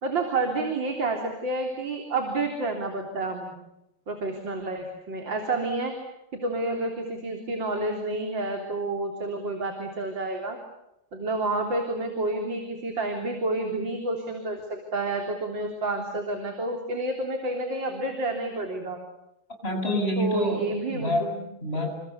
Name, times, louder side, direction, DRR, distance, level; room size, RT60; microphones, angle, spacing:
voice 1, 0.0-3.5 4.1-5.9 6.3-10.6 11.1-19.0 20.2-21.4, right 2 dB, 60° right, 3 dB, 4.3 m, -29 dB
voice 2, 19.6-21.3 21.6-21.9, equal, 25° left, 4 dB, 7.8 m, -27 dB
30.0 x 27.5 x 7.0 m, 0.85 s
omnidirectional pair, 2.4 m